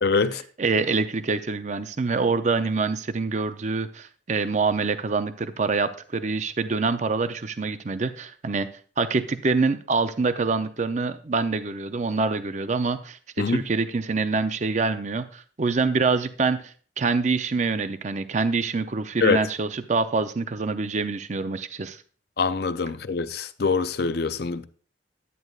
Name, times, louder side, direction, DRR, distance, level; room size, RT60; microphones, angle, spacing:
voice 1, 0.0-0.4 13.4-13.6 19.2-19.4 22.4-24.6, left 4 dB, 60° left, 0.5 m, -24 dB
voice 2, 0.6-8.7 9.0-22.0, right 4 dB, 40° right, 0.5 m, -25 dB
11.0 x 9.4 x 2.4 m
head